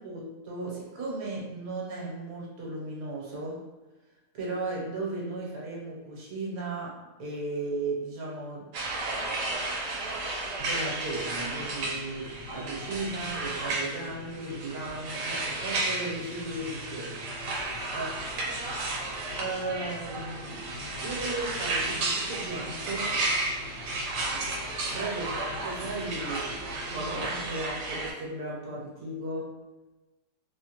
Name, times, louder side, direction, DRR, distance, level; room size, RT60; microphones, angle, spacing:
voice 1, 0.0-3.6 4.3-8.7 10.3-17.1 17.9-18.1 19.4-20.7 21.0-23.1 24.6-24.7 24.9-26.5 26.9-29.5, right 2 dB, 70° right, -4 dB, 1.3 m, -36 dB
sound 1, 8.7-28.1, right 2 dB, 90° right, 1.2 m, -33 dB
sound 2, 11.1-27.4, left 2 dB, 70° left, 1.1 m, -46 dB
3.1 x 2.2 x 2.8 m, 1.1 s
omnidirectional pair, 1.7 m